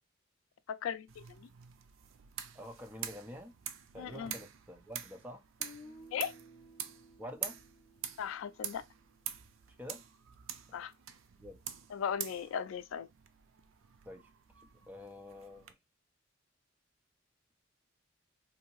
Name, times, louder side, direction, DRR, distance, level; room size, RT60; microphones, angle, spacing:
voice 1, 0.7-1.5 4.0-4.3 6.1-6.3 8.2-8.8 10.7-10.9 11.9-13.1, left 8 dB, 80° left, 0.3 m, -37 dB
sound 1, 1.1-15.7, right 9 dB, 75° right, 0.4 m, -46 dB
voice 2, 2.5-3.5 3.9-5.4 7.2-7.6 9.8-10.0 10.7-10.8 11.4-11.6 14.0-14.3 14.6-15.8, equal, 10° right, 0.4 m, -47 dB
Guitar, 5.6-9.5, equal, 30° left, 1.0 m, -56 dB
2.7 x 2.6 x 2.9 m
head